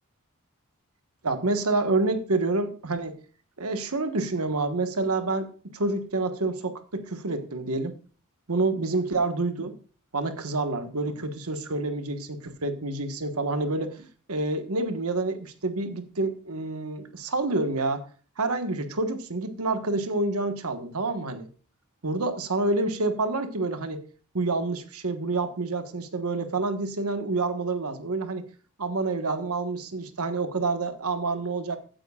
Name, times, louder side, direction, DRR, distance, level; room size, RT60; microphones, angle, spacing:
voice 1, 1.2-3.2 3.6-5.5 5.7-8.0 8.5-9.7 10.1-18.0 18.4-21.5 22.0-24.0 24.3-28.4 28.8-31.8, right 3 dB, 75° right, 8 dB, 1.3 m, -28 dB
15.5 x 9.2 x 2.4 m, 0.38 s
head